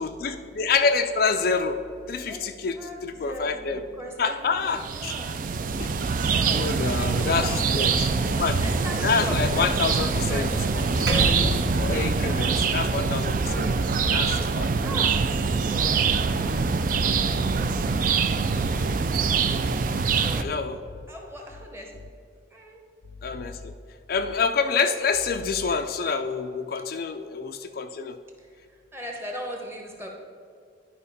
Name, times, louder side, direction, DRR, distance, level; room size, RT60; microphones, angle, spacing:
voice 1, 0.0-1.8 2.1-3.8 4.2-5.1 6.5-8.1 8.4-8.6 9.0-11.1 11.7-13.7 14.1-14.7 20.4-20.8 23.2-23.5 24.1-28.1, left 5 dB, 50° left, 7 dB, 0.3 m, -27 dB
voice 2, 2.7-5.3 5.6-5.7 6.2-8.1 8.6-13.8 14.4-15.2 15.7-16.2 17.6-18.2 18.6-19.6 20.2-20.4 21.1-21.9 22.5-22.8 28.4-28.5 28.9-30.1, equal, 15° right, 0 dB, 1.0 m, -39 dB
sound 1, 4.7-20.4, right 5 dB, 45° right, 0.3 m, -24 dB
Percussion, 11.1-15.8, right 1 dB, 65° right, 0.8 m, -32 dB
11.0 x 5.1 x 4.1 m, 2.3 s
head